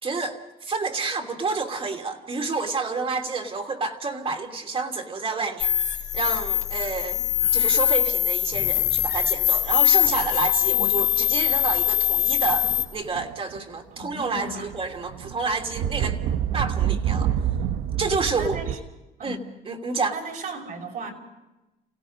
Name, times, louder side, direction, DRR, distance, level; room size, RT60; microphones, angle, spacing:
voice 1, 0.0-5.7 6.1-7.2 7.5-16.2 16.5-17.3 18.0-18.7 19.2-19.4 19.6-20.1, right 4 dB, 35° right, 4 dB, 2.9 m, -29 dB
sound 1, 5.6-12.8, left 13 dB, 85° left, 2.9 m, -22 dB
sound 2, 10.6-10.9 11.4-11.9 12.4-13.6 14.0-18.8, right 9 dB, 80° right, 1.0 m, -28 dB
voice 2, 13.7-14.7 18.4-18.8 19.2-19.4 19.9-21.1, right 2 dB, 60° right, 0 dB, 5.8 m, -37 dB
29.0 x 17.0 x 5.3 m, 1.0 s
cardioid pair, 110°, 17 cm